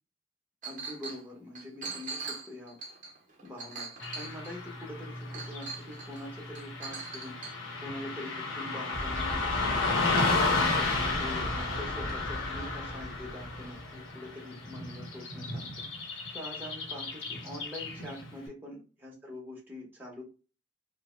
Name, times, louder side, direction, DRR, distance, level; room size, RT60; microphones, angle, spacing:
voice 1, 0.6-2.8 3.4-7.4 7.8-9.9 10.5-20.2, left 1 dB, 10° right, -3 dB, 0.8 m, -44 dB
Chink clink, 0.6-1.2 1.6-4.7 5.3-6.2 6.6-7.6, right 4 dB, 40° right, 0.7 m, -41 dB
Car passing by / Traffic noise roadway noise, 4.0-18.3, left 3 dB, 85° left, 0.9 m, -33 dB
sound 1, 8.9-14.1, equal, 35° left, 1.1 m, -40 dB
2.9 x 2.1 x 3.0 m, 0.33 s
head